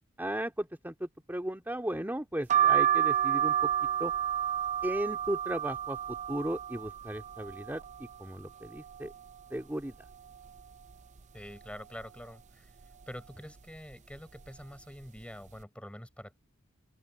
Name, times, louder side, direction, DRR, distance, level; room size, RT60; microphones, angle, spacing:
voice 1, 0.2-3.6 4.0-4.1 4.8-6.0 6.3-9.1 9.5-9.9, right 1 dB, 10° right, 2.5 m, -35 dB
sound 1, 2.5-8.2 8.6-9.4 9.8-9.9 10.1-11.2 11.7-12.0 12.8-13.1 13.9-14.2 14.4-14.6, right 10 dB, 35° right, 0.6 m, -30 dB
voice 2, 11.3-12.7 13.1-16.4, equal, 5° left, 7.0 m, -46 dB
open air
head